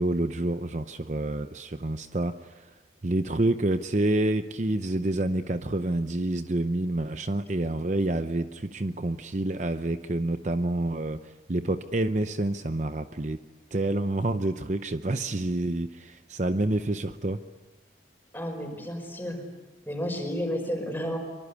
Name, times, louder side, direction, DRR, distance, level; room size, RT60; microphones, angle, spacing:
voice 1, 0.0-2.7 3.0-13.4 13.7-17.4, right 2 dB, 40° right, 9 dB, 0.8 m, -28 dB
voice 2, 18.3-19.4 19.9-21.2, equal, 10° left, 3 dB, 5.2 m, -31 dB
24.0 x 24.0 x 8.4 m, 1.2 s
head